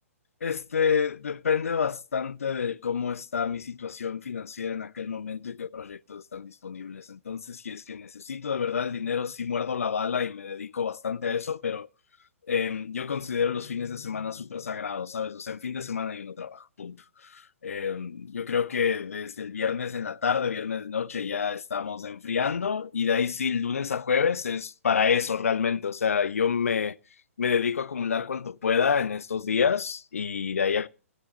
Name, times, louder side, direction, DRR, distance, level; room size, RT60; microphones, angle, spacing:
voice 1, 0.4-11.9 12.5-17.0 17.3-27.0 27.4-30.9, left 6 dB, 70° left, 0.6 m, -28 dB
16.0 x 9.8 x 2.9 m
figure-of-eight pair, 120°, 8 cm